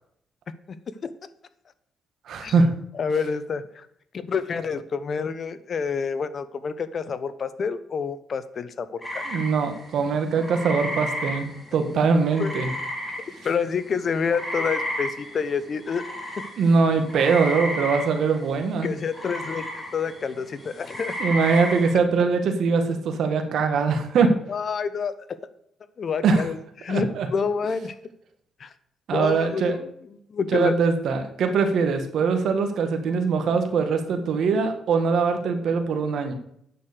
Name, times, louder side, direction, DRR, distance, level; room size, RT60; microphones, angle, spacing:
voice 1, 2.3-2.7 9.3-12.7 16.6-18.9 21.2-24.3 26.2-26.5 26.9-27.3 29.1-29.8 30.5-36.3, right 5 dB, 70° right, 6 dB, 1.6 m, -22 dB
voice 2, 2.9-3.9 4.1-9.4 12.4-12.6 13.4-16.0 18.8-21.1 24.5-25.4 26.0-27.9 28.6-28.7 29.1-30.7, left 5 dB, 50° left, 13 dB, 0.9 m, -28 dB
sound 1, 9.0-13.7 14.0-21.9, left 1 dB, 10° left, 3.8 m, -33 dB
9.3 x 6.5 x 6.8 m, 0.71 s
cardioid pair, 90°, 0 cm